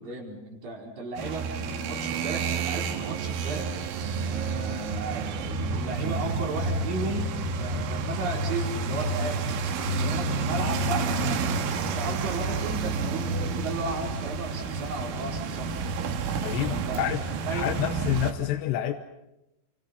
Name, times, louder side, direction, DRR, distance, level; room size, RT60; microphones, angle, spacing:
voice 1, 0.0-3.8 4.2-9.5 9.8-11.5 11.8-15.8 16.7-17.1 17.5-17.7, right 3 dB, 50° right, 0 dB, 6.1 m, -35 dB
sound 1, 1.2-18.3, right 3 dB, 90° right, 4.2 m, -29 dB
voice 2, 16.4-17.2 17.5-18.9, left 12 dB, 75° left, 6 dB, 2.9 m, -28 dB
29.0 x 26.0 x 5.7 m, 0.93 s
omnidirectional pair, 5.4 m